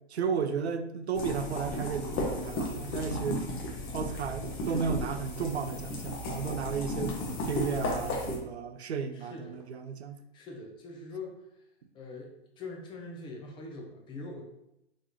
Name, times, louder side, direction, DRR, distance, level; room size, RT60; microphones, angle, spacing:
voice 1, 0.1-3.4 3.9-7.1 7.4-10.2, right 6 dB, 85° right, 9 dB, 0.5 m, -33 dB
sound 1, 1.2-8.4, left 1 dB, 30° left, 1.0 m, -34 dB
voice 2, 9.1-9.7 10.3-11.4 11.9-14.4, left 3 dB, 15° left, 1 dB, 0.5 m, -43 dB
3.7 x 3.1 x 2.8 m, 0.84 s
hypercardioid pair, 120°, 32 cm